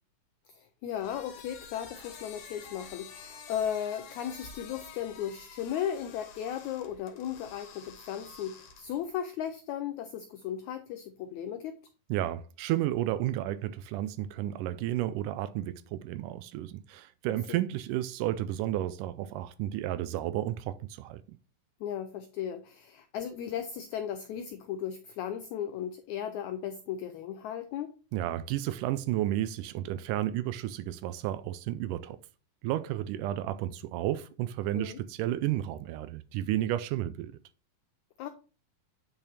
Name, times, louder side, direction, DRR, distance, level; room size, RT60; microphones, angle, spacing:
voice 1, 0.5-11.7 17.3-17.6 21.8-27.9 34.7-35.0 38.2-38.3, left 9 dB, 85° left, 1.6 m, -36 dB
sound 1, 0.9-9.1, left 6 dB, 65° left, 2.5 m, -49 dB
voice 2, 12.1-21.4 28.1-32.2 32.6-37.3, right 13 dB, 80° right, 1.9 m, -32 dB
8.9 x 5.6 x 3.4 m
omnidirectional pair, 4.0 m